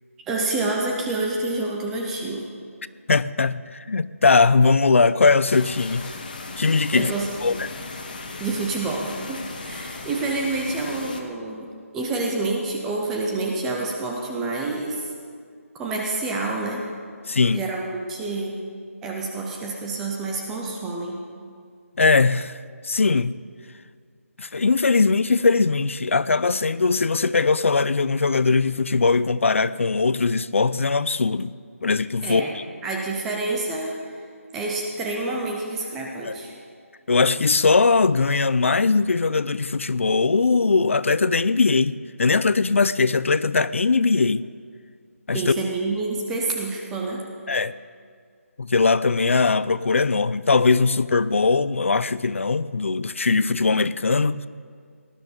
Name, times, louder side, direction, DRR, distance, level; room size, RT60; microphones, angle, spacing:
voice 1, 0.3-2.5 6.9-7.3 8.4-11.7 11.9-15.1 15.7-16.9 17.5-18.6 19.0-21.2 32.2-32.5 32.8-34.2 34.5-36.5 45.3-47.2, right 3 dB, 5° right, 0.3 m, -28 dB
voice 2, 3.1-6.1 6.6-7.1 7.4-7.7 17.3-17.6 22.0-22.6 22.8-23.4 24.4-31.6 31.8-32.5 36.2-36.3 37.1-44.4 45.3-45.4 47.5-47.7 48.6-54.5, left 4 dB, 60° left, 0.5 m, -20 dB
sound 1, 5.4-11.2, left 3 dB, 35° left, 1.4 m, -37 dB
18.5 x 12.0 x 5.2 m
figure-of-eight pair, 175°, 8 cm